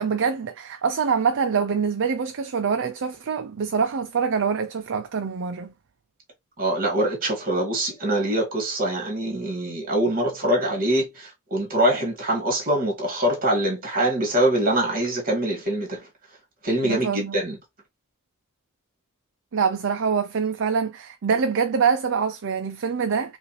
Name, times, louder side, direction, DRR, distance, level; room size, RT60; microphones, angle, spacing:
voice 1, 0.0-5.7 16.8-17.4 19.5-23.4, right 6 dB, 60° right, 0.5 m, -25 dB
voice 2, 6.6-16.0 16.6-17.6, right 1 dB, 40° right, 2.3 m, -24 dB
5.0 x 2.5 x 3.2 m
head